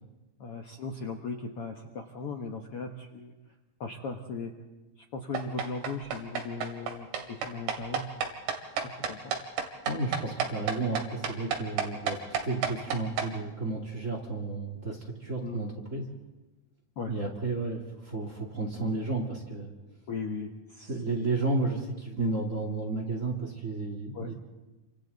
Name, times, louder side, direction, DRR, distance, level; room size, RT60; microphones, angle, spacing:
voice 1, 0.4-3.3 3.8-4.5 5.1-8.1 8.8-9.3 15.4-15.7 17.0-17.1 20.1-21.3 24.1-24.3, left 4 dB, 90° left, 3 dB, 1.2 m, -38 dB
sound 1, 5.3-13.3, right 7 dB, 60° right, 3.2 m, -31 dB
voice 2, 9.8-16.1 17.1-19.7 20.9-24.3, right 3 dB, 25° right, 1 dB, 2.0 m, -32 dB
29.0 x 25.5 x 4.0 m, 1.1 s
omnidirectional pair, 4.5 m